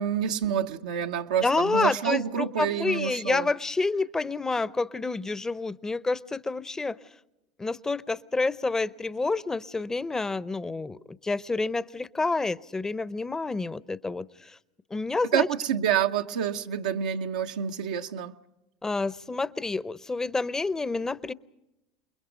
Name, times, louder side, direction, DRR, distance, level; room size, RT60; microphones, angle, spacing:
voice 1, 0.0-3.5 15.3-18.3, right 8 dB, 90° right, 4 dB, 0.9 m, -28 dB
voice 2, 1.4-7.0 7.6-14.6 14.9-15.5 18.8-21.3, left 3 dB, 15° left, 17 dB, 0.7 m, -28 dB
28.5 x 21.5 x 5.1 m, 0.93 s
hypercardioid pair, 100°, 4 cm